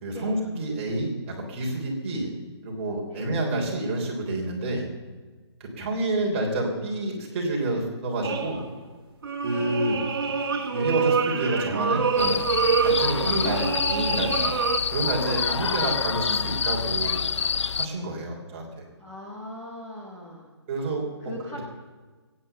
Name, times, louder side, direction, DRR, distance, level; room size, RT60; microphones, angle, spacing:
voice 1, 0.0-2.3 2.6-4.9 5.6-8.6 9.4-10.0 10.7-12.4 12.8-14.5 14.9-17.2 17.7-18.8 20.7-21.1, right 2 dB, 25° right, -1 dB, 3.5 m, -28 dB
sound 1, 8.2-8.8 9.2-14.8, right 5 dB, 55° right, 2.2 m, -26 dB
sound 2, 12.2-17.9, left 6 dB, 85° left, 0.5 m, -27 dB
voice 2, 19.0-20.5 21.2-21.6, left 1 dB, 10° left, -4 dB, 1.7 m, -40 dB
21.5 x 9.5 x 6.8 m, 1.4 s
hypercardioid pair, 170°, 15 cm